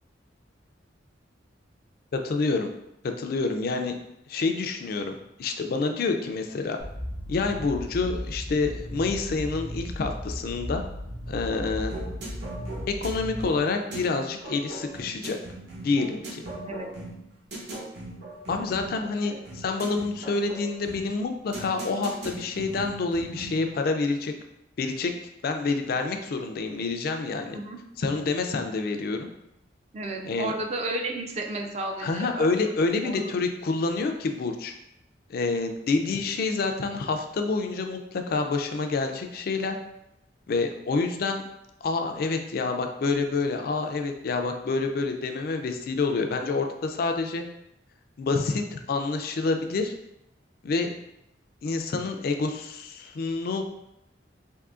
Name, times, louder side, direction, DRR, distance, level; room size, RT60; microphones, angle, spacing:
voice 1, 2.1-2.7 3.0-4.0 4.3-6.8 7.3-10.8 11.3-12.0 12.9-15.4 15.8-16.4 18.5-24.3 24.8-25.1 25.4-27.6 28.0-29.3 30.2-30.5 32.0-34.7 35.3-39.8 40.5-41.4 41.8-47.4 48.2-49.9 50.6-50.9 51.6-53.8, left 3 dB, 55° left, 5 dB, 0.3 m, -28 dB
sound 1, 6.8-13.5, equal, 85° right, 1.4 m, -36 dB
sound 2, 11.9-23.7, right 1 dB, 65° right, 0.8 m, -39 dB
voice 2, 29.9-32.7 33.0-33.3, right 2 dB, 35° right, 3 dB, 0.4 m, -33 dB
3.7 x 2.6 x 2.4 m, 0.83 s
head